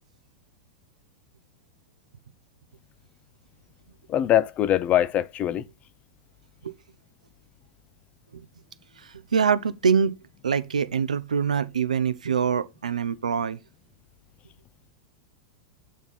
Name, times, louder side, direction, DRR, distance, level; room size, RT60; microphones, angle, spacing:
voice 1, 4.1-5.6, left 11 dB, 35° left, 0.6 m, -22 dB
voice 2, 9.0-10.2 10.4-13.6, right 6 dB, 90° right, 0.5 m, -24 dB
7.2 x 3.8 x 4.0 m
hypercardioid pair, 100°, 4 cm